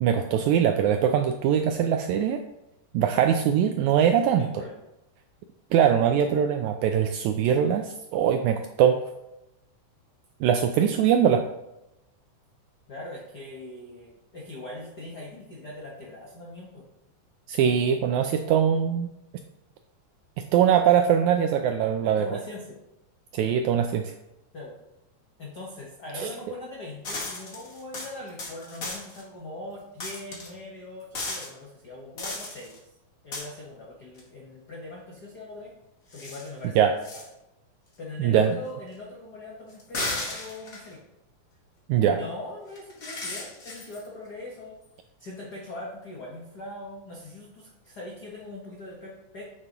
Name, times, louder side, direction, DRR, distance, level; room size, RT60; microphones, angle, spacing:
voice 1, 0.0-2.4 2.9-4.5 5.7-9.0 10.4-11.4 17.5-19.1 20.5-22.3 23.3-24.1 26.1-26.3 36.8-36.9 38.2-38.6 41.9-42.2, right 8 dB, 85° right, 6 dB, 1.7 m, -22 dB
voice 2, 4.3-4.8 12.9-16.9 21.9-22.8 24.5-24.8 25.4-32.8 33.2-35.7 36.1-37.2 38.0-41.0 42.1-44.8 45.2-49.4, left 2 dB, 75° left, -3 dB, 0.9 m, -41 dB
sound 1, 27.0-29.2 30.0-30.5 31.1-31.5 32.2-32.8 33.3-33.4 34.2-34.3 36.1-36.5 37.0-37.3 39.7-40.9 42.8-44.1, left 2 dB, 45° left, 1.1 m, -35 dB
9.5 x 7.5 x 2.9 m, 0.91 s
omnidirectional pair, 3.8 m